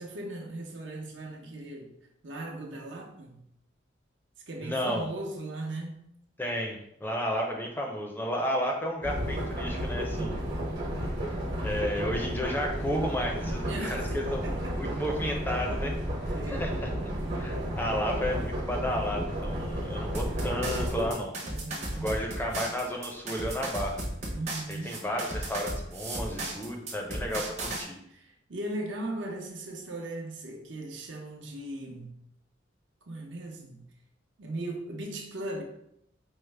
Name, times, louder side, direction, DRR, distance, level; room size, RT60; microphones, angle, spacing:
voice 1, 0.0-1.9 2.2-3.4 4.5-6.0 10.2-10.4 13.6-14.2 14.4-15.0 16.3-16.7 17.0-17.7 21.4-22.1 24.3-25.0 28.1-32.1 33.1-33.9 34.4-35.6, right 1 dB, 80° right, 1 dB, 0.7 m, -38 dB
voice 2, 4.6-5.1 6.4-10.4 11.6-14.5 14.8-15.9 16.3-16.9 17.4-21.3 21.9-24.0 24.7-28.0, equal, 10° left, 1 dB, 0.4 m, -32 dB
sound 1, 9.0-21.1, equal, 60° right, 1.1 m, -32 dB
sound 2, 20.1-27.8, right 1 dB, 40° right, 0.7 m, -35 dB
4.6 x 2.1 x 3.2 m, 0.75 s
head